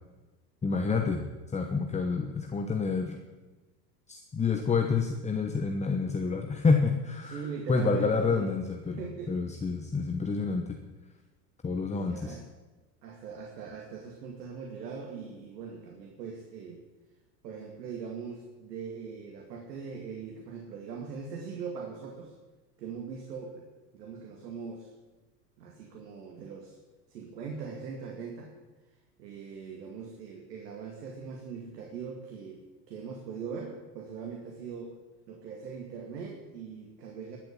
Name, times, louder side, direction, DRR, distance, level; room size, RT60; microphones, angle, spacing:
voice 1, 0.6-1.2 1.5-3.2 4.1-7.4 7.7-9.0 9.3-10.8 11.6-12.4, left 4 dB, 15° left, 4 dB, 1.1 m, -28 dB
voice 2, 7.2-8.5 9.0-9.4 12.0-12.4 13.0-16.8 17.4-22.3 22.8-23.7 23.9-24.9 25.6-26.8 27.1-28.5 29.2-35.0 35.3-37.4, right 5 dB, 75° right, 1 dB, 2.5 m, -41 dB
13.5 x 7.7 x 8.7 m, 1.2 s
hypercardioid pair, 100°, 50 cm